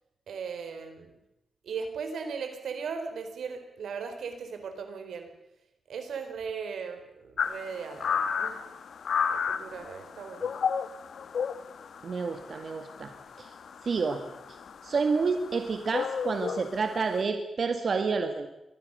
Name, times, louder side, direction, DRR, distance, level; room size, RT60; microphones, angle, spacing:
voice 1, 0.3-1.2 1.6-5.3 5.9-8.6 9.3-10.5, right 5 dB, 90° right, 7 dB, 3.8 m, -38 dB
sound 1, 7.4-17.2, left 6 dB, 75° left, 1.4 m, -33 dB
voice 2, 12.0-13.1 13.4-13.5 13.8-14.2 14.8-18.5, right 4 dB, 55° right, 6 dB, 1.9 m, -29 dB
23.5 x 19.0 x 6.8 m, 0.89 s
wide cardioid pair, 110°, 0 cm